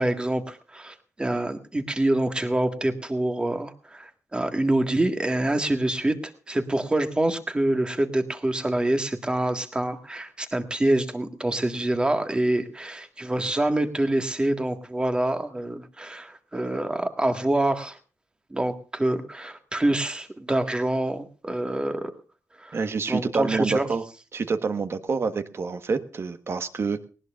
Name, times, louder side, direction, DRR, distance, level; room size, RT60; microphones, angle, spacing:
voice 1, 0.0-18.0 18.5-22.1 22.6-22.8 23.1-23.8, right 1 dB, 15° right, 7 dB, 1.8 m, -26 dB
voice 2, 22.7-24.0 24.3-27.0, right 4 dB, 45° right, 10 dB, 1.4 m, -27 dB
19.5 x 19.0 x 2.5 m, 0.37 s
wide cardioid pair, 130°, 6 cm